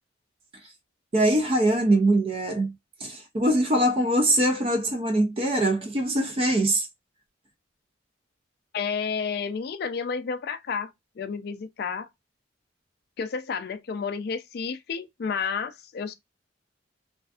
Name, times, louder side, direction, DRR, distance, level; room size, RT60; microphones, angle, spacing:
voice 1, 1.1-2.7 3.0-6.9, right 1 dB, 30° right, 0.4 m, -23 dB
voice 2, 8.7-12.1 13.2-16.1, left 5 dB, 55° left, 0.3 m, -31 dB
2.5 x 2.3 x 2.3 m
head